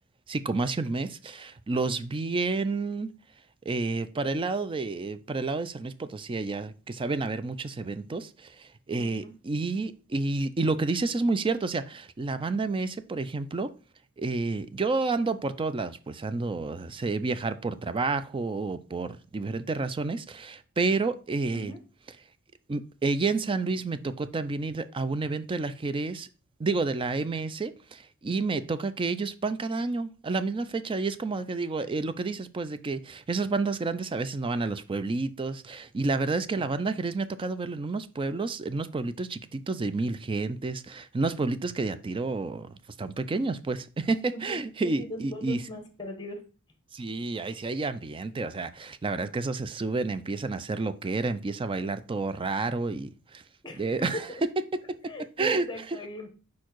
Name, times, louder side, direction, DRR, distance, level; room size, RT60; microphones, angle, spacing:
voice 1, 0.3-3.1 3.7-13.7 14.2-21.7 22.7-26.3 26.6-45.6 46.9-53.4 53.8-54.3 55.4-55.7, right 3 dB, 25° right, 0.4 m, -30 dB
voice 2, 9.0-9.3 21.5-21.8 44.3-46.4 47.4-47.6 53.6-54.4 55.0-56.3, left 1 dB, 20° left, 1.3 m, -40 dB
4.7 x 4.5 x 4.5 m
head